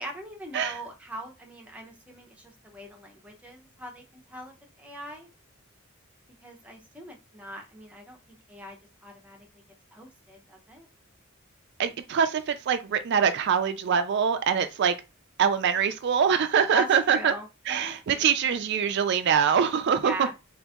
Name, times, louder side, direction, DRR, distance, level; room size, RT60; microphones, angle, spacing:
voice 1, 0.0-5.3 6.4-8.2 8.5-8.8 9.0-9.5 9.9-10.9 16.7-16.9 17.1-18.3 20.0-20.3, equal, 5° right, 0.7 m, -41 dB
voice 2, 11.8-14.9 15.4-17.3 17.7-20.1, right 7 dB, 50° right, 0.3 m, -24 dB
3.9 x 2.5 x 3.5 m
head